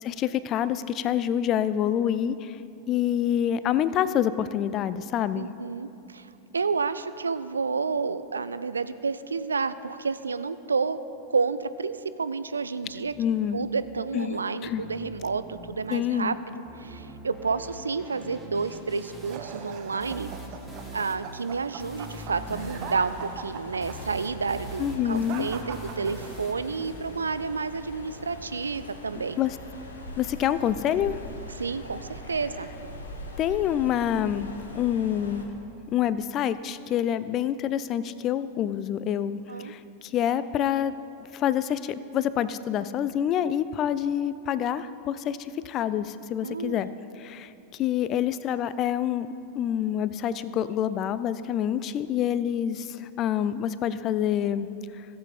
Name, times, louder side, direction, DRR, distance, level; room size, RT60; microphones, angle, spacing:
voice 1, 0.0-2.6 2.9-5.5 13.2-13.6 14.1-14.4 14.6-14.8 15.9-16.4 24.8-25.5 29.4-29.6 30.2-31.2 33.4-34.5 34.7-35.4 35.9-40.9 41.3-46.9 47.2-47.5 47.8-54.7 55.0-55.1, left 10 dB, 35° left, 15 dB, 0.4 m, -27 dB
voice 2, 5.3-11.0 11.3-13.1 13.5-20.3 20.9-29.4 31.6-32.7 39.5-39.7 46.4-46.9, right 4 dB, 75° right, 13 dB, 0.4 m, -30 dB
sound 1, 12.8-27.8, equal, ahead, 1.7 m, -44 dB
sound 2, 19.2-26.7, right 7 dB, 45° right, 0.8 m, -41 dB
sound 3, 22.3-35.4, left 1 dB, 70° left, 1.3 m, -42 dB
15.5 x 7.7 x 4.2 m, 2.7 s
figure-of-eight pair, 90°, 0 cm